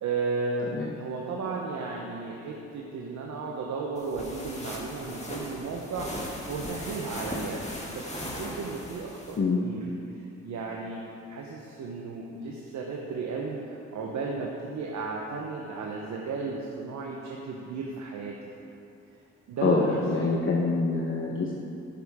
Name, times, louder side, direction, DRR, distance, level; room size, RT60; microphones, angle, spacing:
voice 1, 0.0-0.7 1.0-9.8 10.1-11.0 11.3-18.3 19.5-20.3, right 4 dB, 70° right, -1 dB, 1.0 m, -34 dB
sound 1, 4.0-9.4, left 1 dB, 25° left, 2.2 m, -38 dB
voice 2, 19.6-21.5, left 3 dB, 45° left, -2 dB, 1.2 m, -25 dB
11.0 x 9.5 x 3.7 m, 2.7 s
supercardioid pair, 55°, 29 cm